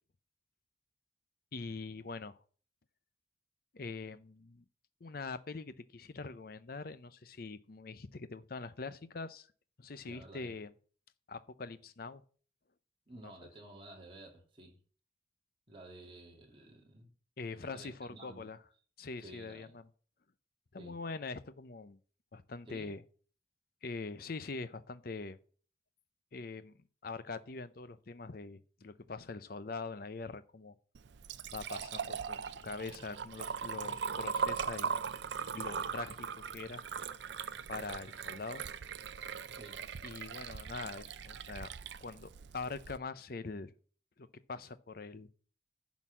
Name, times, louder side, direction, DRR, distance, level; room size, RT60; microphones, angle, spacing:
voice 1, 1.5-2.4 3.7-4.6 5.0-9.5 9.8-10.7 11.3-12.2 13.2-13.3 17.4-18.6 19.0-19.9 20.7-22.0 22.3-23.0 23.8-25.4 26.3-26.7 27.0-30.8 31.5-34.9 35.5-36.8 37.7-38.6 40.0-41.7 42.0-43.7 44.2-45.3, left 4 dB, 50° left, 0.6 m, -43 dB
voice 2, 10.0-10.6 13.1-14.8 15.7-17.1 17.7-18.5 19.2-19.8 20.8-21.0 22.7-22.9 39.5-39.8, right 2 dB, 30° right, 2.6 m, -53 dB
Liquid, 30.9-43.0, right 6 dB, 70° right, 0.5 m, -40 dB
11.0 x 4.1 x 7.3 m
head